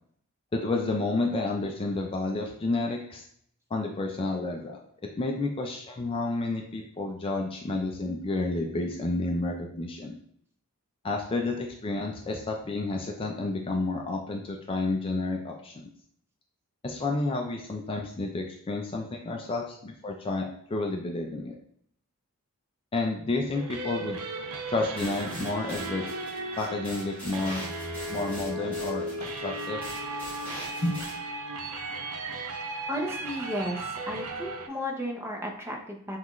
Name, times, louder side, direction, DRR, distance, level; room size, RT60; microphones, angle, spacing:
voice 1, 0.5-3.2 3.7-4.8 5.2-10.2 11.0-15.9 16.8-21.5 22.9-24.2 24.7-26.0 26.6-27.6 28.1-29.8 30.8-31.0, left 2 dB, 25° left, 1 dB, 0.4 m, -30 dB
sound 1, 23.5-34.7, right 1 dB, 90° right, 0.6 m, -36 dB
sound 2, 25.0-31.1, equal, 10° left, 1.5 m, -43 dB
voice 2, 32.9-33.8 34.1-36.2, equal, 10° right, 0 dB, 0.7 m, -33 dB
5.6 x 2.4 x 3.1 m, 0.66 s
head